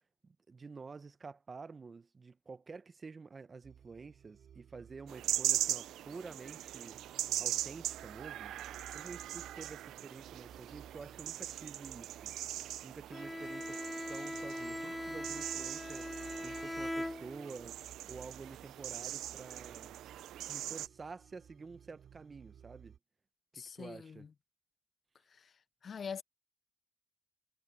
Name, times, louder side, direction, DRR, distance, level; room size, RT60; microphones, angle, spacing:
voice 1, 0.2-7.0 7.4-8.6 8.9-12.3 12.8-13.8 14.1-17.8 18.1-20.0 20.4-23.0 23.5-24.3, right 4 dB, 35° right, 0.9 m, -49 dB
sound 1, 3.6-23.0, right 8 dB, 65° right, 4.3 m, -58 dB
sound 2, 5.1-20.9, right 13 dB, 80° right, 0.5 m, -40 dB
Bowed string instrument, 13.1-17.7, left 1 dB, 5° left, 1.2 m, -41 dB
voice 2, 23.5-24.3 25.3-25.5 25.8-26.2, left 6 dB, 50° left, 0.7 m, -44 dB
cardioid pair, 80°, 0 cm